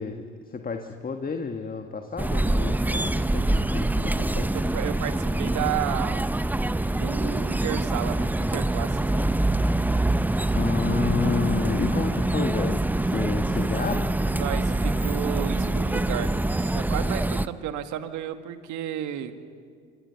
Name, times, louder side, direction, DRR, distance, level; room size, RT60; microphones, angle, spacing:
voice 1, 0.0-4.6 10.5-14.1, left 5 dB, 25° left, 5 dB, 1.5 m, -31 dB
sound 1, 2.2-17.5, right 2 dB, 5° right, 0.6 m, -25 dB
voice 2, 4.5-6.3 6.8-9.2 14.3-16.4 16.7-19.4, right 11 dB, 55° right, 9 dB, 1.7 m, -32 dB
25.5 x 24.0 x 5.8 m, 2.1 s
hypercardioid pair, 70°, 34 cm